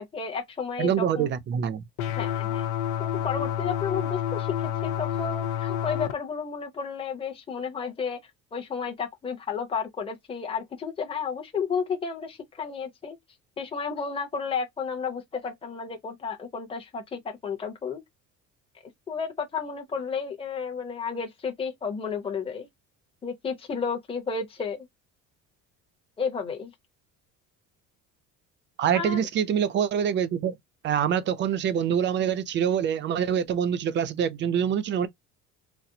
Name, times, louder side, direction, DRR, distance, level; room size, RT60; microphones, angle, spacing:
voice 1, 0.0-1.3 2.2-2.7 3.0-8.2 8.5-13.2 13.6-18.0 19.1-22.7 23.2-24.9 26.2-26.7 28.9-29.2, left 5 dB, 20° left, 0.8 m, -32 dB
voice 2, 0.8-1.8 28.8-30.6 30.8-35.1, right 8 dB, 35° right, 0.5 m, -25 dB
sound 1, 2.0-6.1, left 10 dB, 90° left, 0.8 m, -29 dB
4.1 x 2.0 x 2.7 m
cardioid pair, 150°, 31 cm